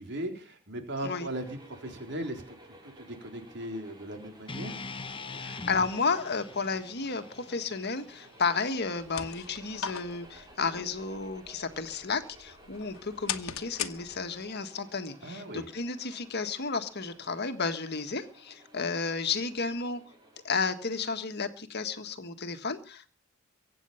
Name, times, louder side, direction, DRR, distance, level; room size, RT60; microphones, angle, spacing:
voice 1, 0.0-2.6 3.0-4.8 15.2-15.7, right 1 dB, 60° right, 4 dB, 3.8 m, -38 dB
sound 1, 1.1-21.1, right 1 dB, 20° right, 5.7 m, -55 dB
sound 2, 4.5-8.7, left 3 dB, 25° left, 1.0 m, -43 dB
voice 2, 5.4-20.0 20.4-23.1, left 4 dB, 55° left, 8 dB, 1.7 m, -32 dB
sound 3, 8.8-14.5, left 8 dB, 85° left, 1.2 m, -40 dB
23.5 x 9.2 x 5.8 m, 0.37 s
head